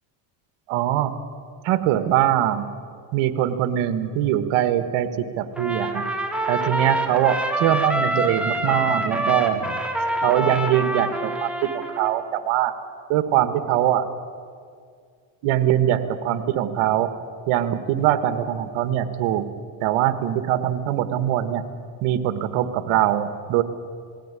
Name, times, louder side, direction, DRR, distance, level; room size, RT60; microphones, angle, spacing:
voice 1, 0.7-1.1 1.6-2.7 3.1-6.0 6.5-9.8 10.2-12.7 13.1-14.0 15.4-17.1 17.5-19.5 19.8-21.6 22.0-23.6, right 11 dB, 85° right, 12 dB, 1.5 m, -22 dB
Trumpet, 5.6-12.1, right 1 dB, ahead, 2.6 m, -26 dB
20.0 x 16.0 x 9.8 m, 2.2 s
cardioid pair, 90°, 48 cm